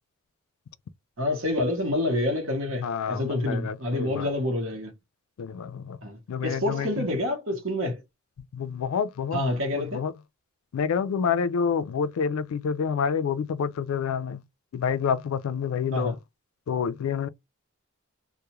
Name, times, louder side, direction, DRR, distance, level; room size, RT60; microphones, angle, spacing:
voice 1, 1.2-4.9 6.0-8.0 9.3-10.1 15.9-16.2, left 1 dB, 65° right, 0.9 m, -28 dB
voice 2, 2.8-4.3 5.4-6.0 6.3-7.1 8.5-9.4 9.7-10.1 10.7-14.4 14.7-16.2 16.7-17.3, left 6 dB, 75° left, 0.3 m, -28 dB
2.3 x 2.0 x 2.9 m
head